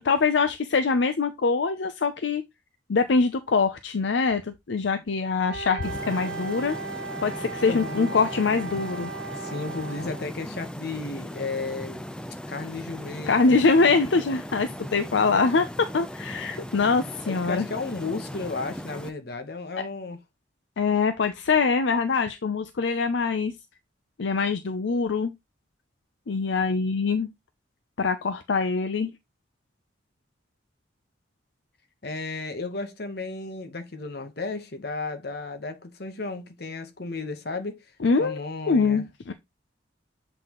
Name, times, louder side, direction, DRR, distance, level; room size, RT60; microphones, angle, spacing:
voice 1, 0.0-2.4 2.9-6.8 7.2-9.1 13.3-17.7 20.8-23.5 24.2-25.3 26.3-27.3 28.0-29.1 38.0-38.4 38.7-39.3, left 4 dB, 75° left, 0.6 m, -23 dB
Wind instrument woodwind instrument, 5.5-10.3, right 4 dB, 65° right, 1.1 m, -36 dB
sound 1, 5.8-19.1, equal, 5° left, 0.5 m, -38 dB
voice 2, 7.7-8.1 9.3-12.0 12.5-13.7 17.2-20.2 32.0-37.8 38.2-39.0, left 3 dB, 55° left, 1.1 m, -34 dB
7.6 x 4.1 x 3.0 m
head